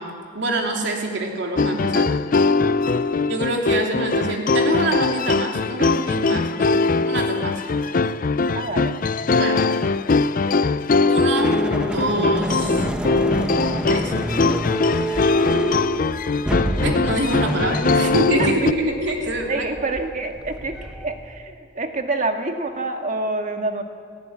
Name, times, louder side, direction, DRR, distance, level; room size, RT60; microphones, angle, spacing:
voice 1, 0.0-2.1 3.3-7.6 9.3-9.7 11.1-12.9 13.9-14.1 16.8-19.7, right 1 dB, 60° right, 1 dB, 3.2 m, -25 dB
sound 1, 1.6-18.7, left 3 dB, 45° left, 0.5 m, -21 dB
voice 2, 8.5-9.0 18.4-18.5 19.5-23.8, right 2 dB, 40° right, 4 dB, 1.8 m, -27 dB
sound 2, 11.3-21.4, right 1 dB, 5° right, 1.1 m, -28 dB
17.5 x 17.5 x 9.5 m, 2.3 s
head